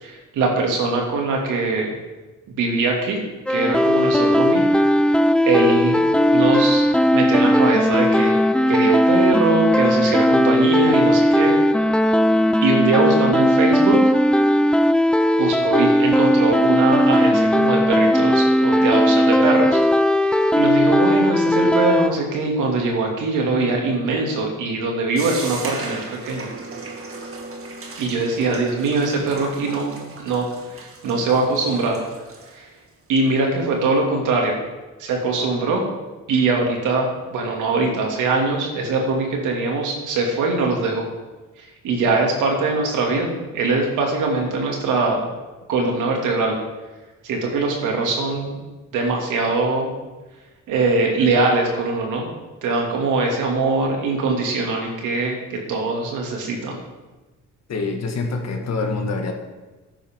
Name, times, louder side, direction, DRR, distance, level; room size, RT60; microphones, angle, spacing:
voice 1, 0.0-2.0 2.6-3.2 3.5-4.6 5.4-6.0 6.3-6.9 7.1-8.4 8.7-11.6 12.6-14.1 15.4-19.8 20.2-26.5 28.0-30.5 30.8-32.0 32.5-32.7 33.1-34.6 35.0-35.8 36.3-41.0 41.8-45.3 45.7-46.6 47.2-48.6 48.9-49.9 50.7-52.3 52.6-56.8, right 3 dB, 90° right, 0 dB, 2.5 m, -22 dB
sound 1, 3.5-22.1, equal, 5° left, 0.5 m, -17 dB
sound 2, 25.2-32.5, right 3 dB, 45° right, 1.8 m, -37 dB
voice 2, 57.7-59.3, left 3 dB, 60° left, 2 dB, 1.9 m, -25 dB
13.5 x 10.0 x 3.7 m, 1.2 s
cardioid pair, 90°, 30 cm